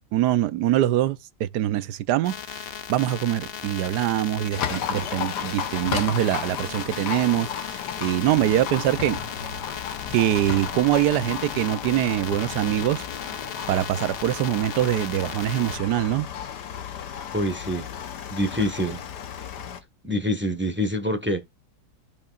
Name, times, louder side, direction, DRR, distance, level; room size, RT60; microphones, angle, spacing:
voice 1, 0.1-2.3 2.9-9.2 10.1-13.0 13.7-16.3, right 13 dB, 80° right, 1.2 m, -23 dB
sound 1, 2.2-15.8, left 8 dB, 65° left, 0.6 m, -37 dB
Livestock farm animals working animals, 4.5-19.8, left 8 dB, 80° left, 1.5 m, -34 dB
voice 2, 17.3-17.9 18.3-19.0 20.0-21.4, equal, 10° right, 1.2 m, -26 dB
14.5 x 5.3 x 2.4 m
omnidirectional pair, 1.8 m